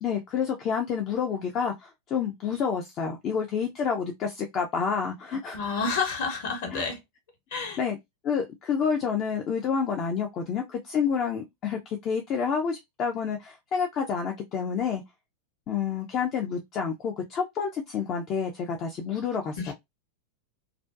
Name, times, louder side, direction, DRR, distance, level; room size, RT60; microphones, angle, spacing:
voice 1, 0.0-5.6 6.7-6.9 7.8-8.0 8.2-15.0 15.7-19.7, left 6 dB, 35° left, 0.4 m, -29 dB
voice 2, 5.5-7.0 7.5-7.8 19.6-19.7, left 4 dB, 50° left, 1.0 m, -29 dB
2.4 x 2.1 x 2.4 m
figure-of-eight pair, 90°, 0 cm